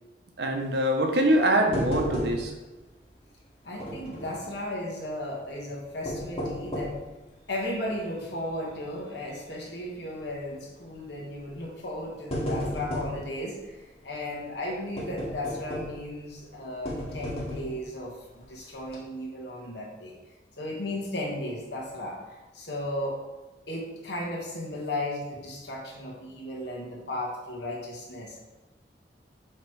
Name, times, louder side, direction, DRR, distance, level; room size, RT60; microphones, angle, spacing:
voice 1, 0.4-2.5, right 1 dB, 70° right, 2 dB, 0.9 m, -24 dB
sound 1, 1.7-2.7 3.0-3.1 3.8-4.5 5.8-7.1 7.6-7.7 8.4-8.6 8.9-9.0 10.2-10.5 11.4-11.5 11.9-13.2 15.0-16.1 16.8-17.8 18.4-18.5 18.8-18.9, equal, 35° left, 1.6 m, -33 dB
voice 2, 3.6-7.0 7.5-20.1 20.6-23.2 23.7-28.4, left 1 dB, 75° left, -2 dB, 1.6 m, -35 dB
6.7 x 3.2 x 4.7 m, 1.1 s
head